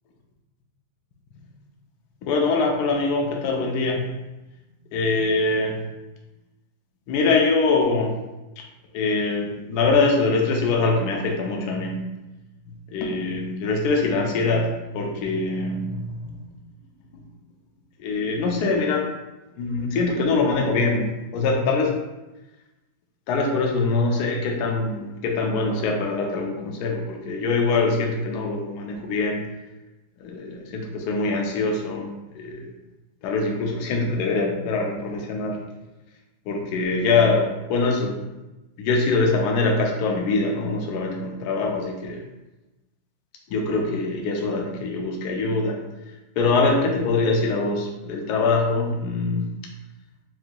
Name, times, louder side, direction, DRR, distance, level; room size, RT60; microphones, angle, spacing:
voice 1, 2.2-4.0 4.9-5.8 7.1-8.1 8.6-8.7 8.9-12.0 12.9-16.4 18.0-19.1 19.6-21.9 23.3-29.4 30.2-32.1 32.3-32.7 33.2-35.6 36.5-38.1 38.8-42.2 43.5-45.8 46.4-49.5, left 3 dB, 70° left, 1 dB, 1.1 m, -23 dB
5.9 x 2.6 x 2.2 m, 1.0 s
omnidirectional pair, 1.9 m